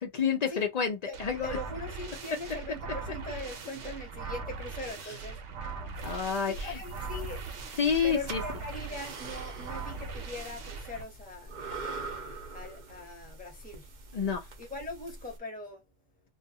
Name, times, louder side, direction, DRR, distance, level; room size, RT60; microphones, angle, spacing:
voice 1, 0.0-1.5 6.0-6.8 7.8-8.4 14.1-14.5, left 6 dB, 80° left, 0.3 m, -29 dB
voice 2, 1.1-5.4 6.5-7.4 8.0-11.5 12.5-13.9 14.6-15.8, left 2 dB, 10° left, 0.8 m, -41 dB
sound 1, 1.1-11.0, right 5 dB, 70° right, 0.9 m, -40 dB
sound 2, 5.9-15.4, right 2 dB, 50° right, 0.6 m, -44 dB
2.5 x 2.3 x 2.6 m
omnidirectional pair, 1.4 m